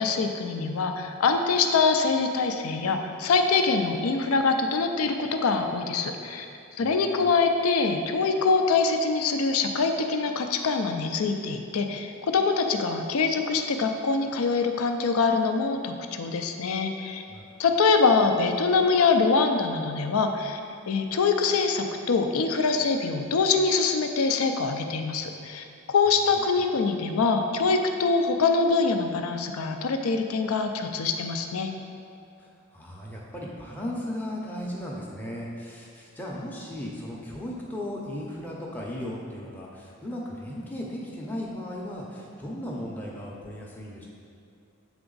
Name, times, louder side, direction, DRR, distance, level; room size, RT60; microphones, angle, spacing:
voice 1, 0.0-6.5 6.8-17.2 17.6-20.6 20.9-31.7, left 4 dB, 75° left, 6 dB, 0.5 m, -24 dB
voice 2, 6.8-7.1 17.3-17.4 26.3-26.5 32.4-44.1, left 1 dB, 10° left, -4 dB, 0.6 m, -36 dB
7.9 x 3.4 x 3.9 m, 2.6 s
head